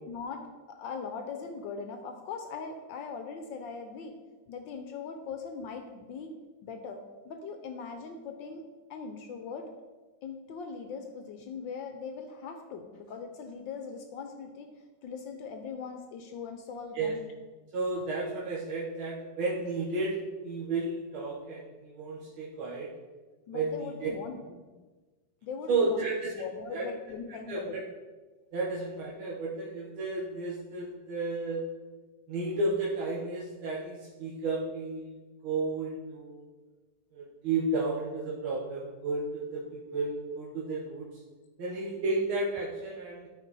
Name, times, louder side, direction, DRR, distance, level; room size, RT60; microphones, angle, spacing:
voice 1, 0.0-4.2 4.5-6.4 6.6-8.6 8.9-9.7 10.2-14.7 15.0-17.2 23.5-24.6 25.4-27.8, left 5 dB, 75° left, 6 dB, 1.3 m, -40 dB
voice 2, 17.7-22.9 23.5-24.1 25.7-26.3 26.7-26.9 27.5-27.8 28.5-31.6 32.3-35.2 35.4-36.5 37.1-41.1 41.6-43.3, right 3 dB, 85° right, -5 dB, 2.0 m, -32 dB
12.5 x 4.6 x 4.1 m, 1.3 s
omnidirectional pair, 2.2 m